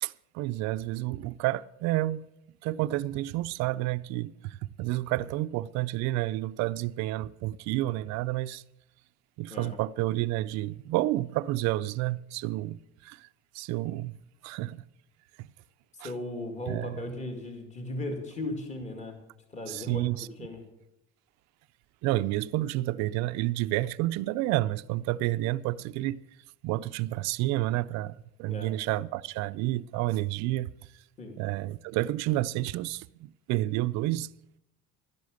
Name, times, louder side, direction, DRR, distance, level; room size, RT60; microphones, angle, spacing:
voice 1, 0.0-2.2 2.6-8.6 9.4-13.3 13.5-14.1 14.4-14.8 15.4-15.5 16.0-16.1 16.7-16.9 19.7-20.3 22.0-26.2 26.6-30.7 31.4-34.3, right 16 dB, 65° right, 0.5 m, -30 dB
voice 2, 15.9-19.2 19.5-20.6 28.5-28.7 31.2-31.4, left 2 dB, 25° left, 2.3 m, -37 dB
12.5 x 10.5 x 6.4 m
cardioid pair, 165°, 30 cm